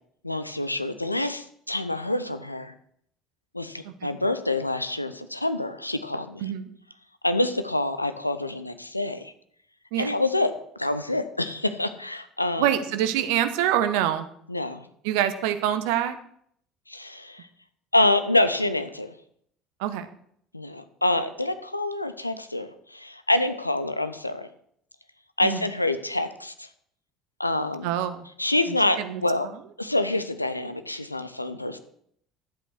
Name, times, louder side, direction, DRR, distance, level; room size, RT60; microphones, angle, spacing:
voice 1, 0.2-2.7 3.5-6.5 7.2-9.3 10.0-12.8 14.5-14.9 16.9-17.5 17.9-19.1 20.5-24.5 25.4-26.7 27.4-27.9 28.4-29.5 29.8-31.8, left 2 dB, 85° left, 10 dB, 0.6 m, -26 dB
voice 2, 3.8-4.2 6.4-6.7 9.9-10.1 12.6-14.3 15.0-16.2 19.8-20.1 25.4-25.6 27.8-28.2 29.0-29.2, right 11 dB, 60° right, 11 dB, 1.0 m, -25 dB
11.5 x 8.1 x 6.2 m, 0.66 s
figure-of-eight pair, 60°, 0 cm